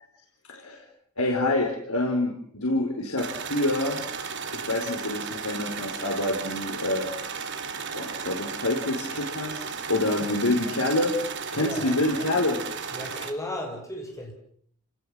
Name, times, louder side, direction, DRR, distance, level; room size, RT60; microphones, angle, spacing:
voice 1, 0.5-0.8 1.2-4.0 4.5-7.1 7.9-11.1 11.5-12.6, left 2 dB, 85° left, 2 dB, 4.6 m, -27 dB
sound 1, 3.2-13.3, right 5 dB, 55° right, 2.7 m, -34 dB
voice 2, 11.5-12.0 12.9-14.3, left 1 dB, 15° left, 1 dB, 7.3 m, -35 dB
29.5 x 19.0 x 7.8 m, 0.63 s
head